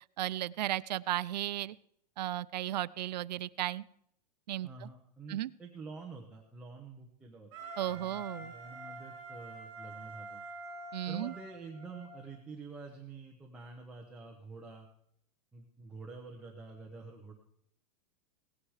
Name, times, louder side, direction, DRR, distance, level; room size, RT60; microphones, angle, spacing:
voice 1, 0.2-1.7 2.2-3.8 4.5-4.7 5.3-5.5 7.8-8.5 10.9-11.3, right 13 dB, 90° right, 18 dB, 0.5 m, -34 dB
voice 2, 4.6-7.5 7.9-10.4 11.1-14.9 15.5-17.3, right 4 dB, 5° right, -1 dB, 0.8 m, -48 dB
Wind instrument woodwind instrument, 7.5-12.3, right 2 dB, 35° right, 5.3 m, -46 dB
17.5 x 9.6 x 4.8 m, 0.72 s
supercardioid pair, 175°, 21 cm